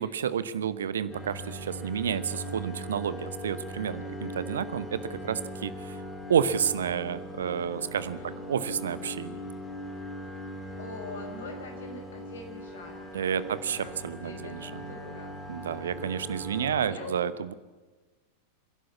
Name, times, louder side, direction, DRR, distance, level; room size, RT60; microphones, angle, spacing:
voice 1, 0.0-6.0 6.3-9.4 13.1-14.9 15.5-17.5, right 8 dB, 65° right, 15 dB, 0.9 m, -30 dB
sound 1, 1.1-16.9, equal, 20° left, 4.6 m, -40 dB
voice 2, 8.0-8.4 10.8-15.4 16.5-17.1, left 2 dB, 60° left, 4 dB, 5.3 m, -44 dB
27.0 x 11.5 x 8.4 m, 1.3 s
figure-of-eight pair, 90°, 0 cm